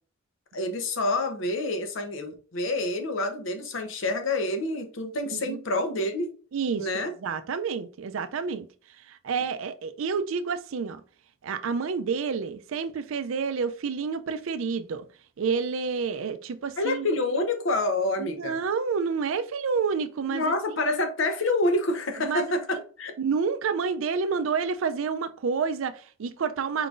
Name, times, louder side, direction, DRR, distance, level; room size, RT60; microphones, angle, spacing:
voice 1, 0.5-6.3 6.8-7.1 16.8-18.6 20.3-23.1, left 2 dB, 70° left, 0.8 m, -27 dB
voice 2, 5.3-5.6 6.5-6.9 7.2-8.7 9.1-11.0 11.4-15.1 15.4-17.1 18.2-20.5 22.2-22.5 23.2-26.9, right 5 dB, 75° right, 0.4 m, -29 dB
4.8 x 3.8 x 2.5 m
head